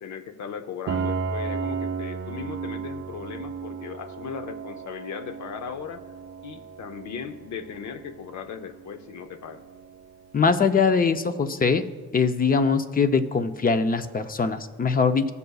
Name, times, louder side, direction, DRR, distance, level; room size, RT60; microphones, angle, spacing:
voice 1, 0.0-6.0 6.4-9.6, left 7 dB, 70° left, 10 dB, 0.7 m, -37 dB
Piano, 0.9-10.4, right 5 dB, 40° right, 0.6 m, -35 dB
voice 2, 10.3-11.8 12.1-15.3, left 5 dB, 30° left, 10 dB, 0.6 m, -22 dB
17.5 x 6.7 x 2.3 m, 1.4 s
cardioid pair, 90°, 30 cm